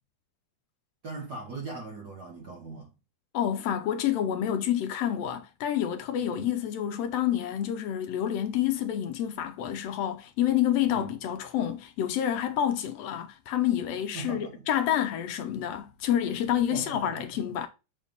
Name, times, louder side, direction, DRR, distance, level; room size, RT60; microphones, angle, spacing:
voice 1, 1.0-2.9 6.2-6.5 10.9-11.1 14.1-14.7 16.7-17.2, right 3 dB, 50° right, 1.2 m, -39 dB
voice 2, 3.3-17.7, left 10 dB, 75° left, 1.5 m, -28 dB
7.2 x 4.2 x 3.5 m
omnidirectional pair, 3.5 m